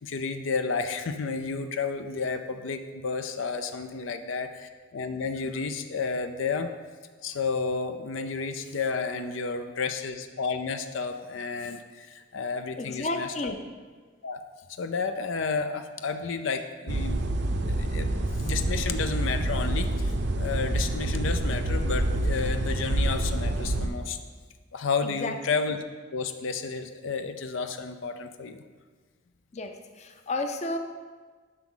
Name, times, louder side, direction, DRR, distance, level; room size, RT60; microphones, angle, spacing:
voice 1, 0.0-6.7 7.2-13.5 14.2-14.4 14.7-17.3 17.6-24.2 24.7-25.8 26.1-28.6, left 4 dB, 80° left, 8 dB, 0.5 m, -31 dB
voice 2, 12.8-13.6 25.0-25.4 29.5-30.8, left 2 dB, 35° left, 6 dB, 0.6 m, -32 dB
sound 1, 16.9-23.9, right 1 dB, 60° right, 0.7 m, -27 dB
11.0 x 5.9 x 3.9 m, 1.4 s
head